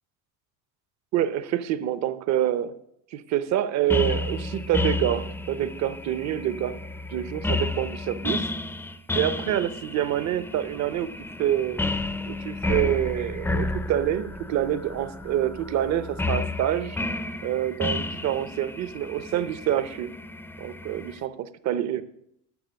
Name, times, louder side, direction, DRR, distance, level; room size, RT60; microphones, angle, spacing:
voice 1, 1.1-2.7 3.1-6.8 7.1-8.4 9.1-11.8 12.3-17.0 17.4-20.1 20.6-22.0, right 11 dB, 50° right, 13 dB, 0.8 m, -27 dB
sound 1, 3.9-21.2, left 2 dB, 5° left, 0.5 m, -31 dB
12.0 x 6.8 x 6.5 m, 0.77 s
cardioid pair, 135°, 36 cm